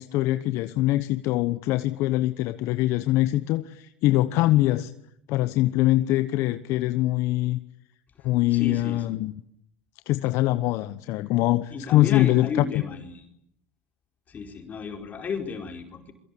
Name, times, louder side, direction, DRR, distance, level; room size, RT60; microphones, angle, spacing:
voice 1, 0.0-4.9 5.3-7.6 8.2-9.3 10.1-12.8, left 16 dB, 60° left, 11 dB, 1.1 m, -23 dB
voice 2, 8.5-9.0 11.7-13.3 14.3-16.1, left 5 dB, 30° left, 3 dB, 4.6 m, -33 dB
28.0 x 23.5 x 8.6 m, 0.74 s
supercardioid pair, 100°, 5 cm